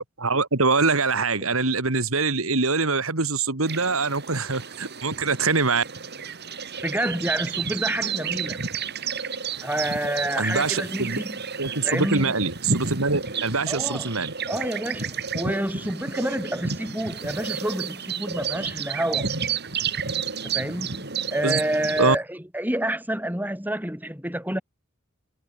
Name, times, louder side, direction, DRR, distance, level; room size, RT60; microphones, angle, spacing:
voice 1, 0.2-5.8 10.4-11.2 11.6-14.3 21.4-21.6 22.0-22.2, right 4 dB, 80° right, 2.5 m, -24 dB
sound 1, 3.6-22.2, right 6 dB, 50° right, 5.6 m, -31 dB
voice 2, 6.8-8.6 9.6-11.4 11.8-12.3 13.7-14.1 14.5-19.3 20.4-21.1 21.3-24.6, right 1 dB, 10° right, 7.9 m, -28 dB
head